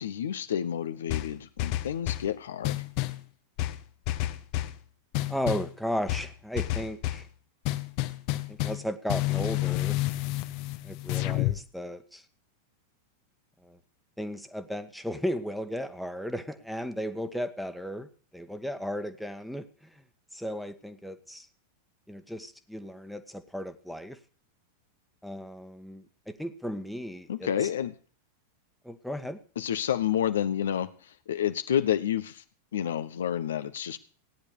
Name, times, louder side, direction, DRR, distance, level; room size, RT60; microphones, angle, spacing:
voice 1, 0.0-2.8 27.3-27.9 29.6-32.4 32.7-34.0, left 10 dB, 65° left, 11 dB, 1.1 m, -29 dB
sound 1, 1.1-2.3 2.6-3.2 3.6-4.8 5.1-5.7 6.1-7.3 7.6-11.6, left 16 dB, 45° left, 1.2 m, -30 dB
voice 2, 5.3-7.3 8.5-10.0 10.8-12.2 13.6-13.8 14.2-19.7 20.3-21.4 22.1-24.2 25.2-27.7 28.8-29.4, equal, ahead, 8 dB, 1.6 m, -35 dB
17.5 x 10.0 x 6.7 m, 0.42 s
figure-of-eight pair, 90°, 0 cm